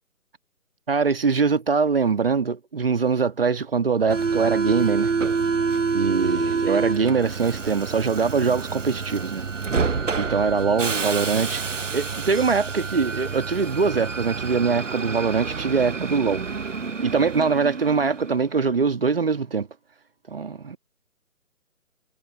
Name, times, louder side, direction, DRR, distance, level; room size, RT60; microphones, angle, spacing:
voice 1, 0.9-5.1 5.9-9.4 10.2-16.4 17.0-19.7 20.3-20.8, right 5 dB, 40° right, 1.7 m, -23 dB
Subway metro underground, 4.1-18.4, right 5 dB, 55° right, 1.0 m, -27 dB
figure-of-eight pair, 150°, 44 cm